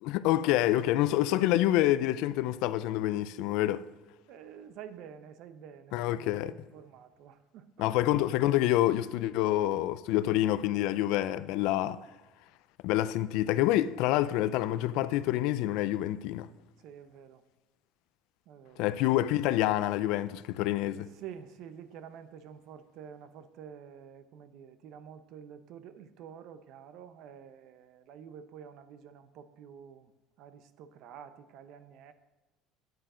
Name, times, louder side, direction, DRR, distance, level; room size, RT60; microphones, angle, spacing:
voice 1, 0.0-3.8 5.9-6.5 7.8-12.0 12.8-16.5 18.8-21.1, left 14 dB, 75° left, 0.4 m, -27 dB
voice 2, 0.9-1.3 4.3-8.1 16.8-17.4 18.5-19.2 21.1-30.1 30.4-32.1, right 8 dB, 60° right, 0.7 m, -49 dB
9.4 x 9.0 x 3.8 m
cardioid pair, 140°, 0 cm